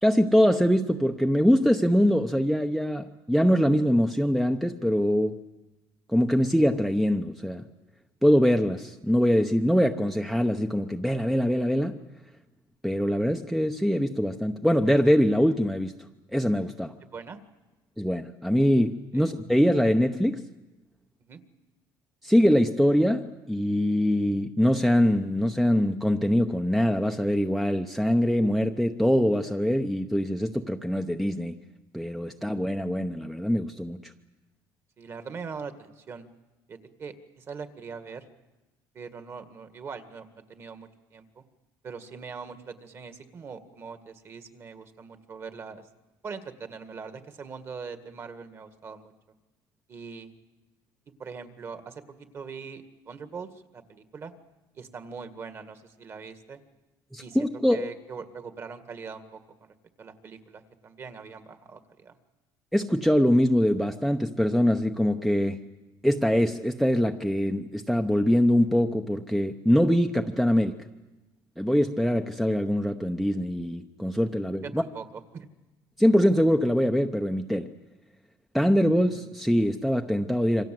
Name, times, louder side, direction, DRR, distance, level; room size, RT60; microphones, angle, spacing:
voice 1, 0.0-5.4 6.1-7.7 8.2-12.0 12.8-15.9 16.3-16.9 18.0-20.5 22.2-31.6 31.9-34.1 57.1-57.9 62.7-65.6 66.0-70.8 71.6-74.8 76.0-77.7 78.5-80.6, equal, ahead, 6 dB, 0.9 m, -23 dB
voice 2, 17.0-17.4 19.1-19.3 21.3-21.4 32.3-32.4 35.0-36.3 36.7-38.2 38.9-41.4 41.8-45.8 46.2-49.1 49.9-50.3 51.2-54.3 54.8-56.6 57.2-59.4 60.0-62.2 74.6-75.0 75.3-75.5, right 5 dB, 35° right, 9 dB, 2.0 m, -41 dB
27.5 x 25.0 x 7.8 m, 1.1 s
cardioid pair, 145°, 8 cm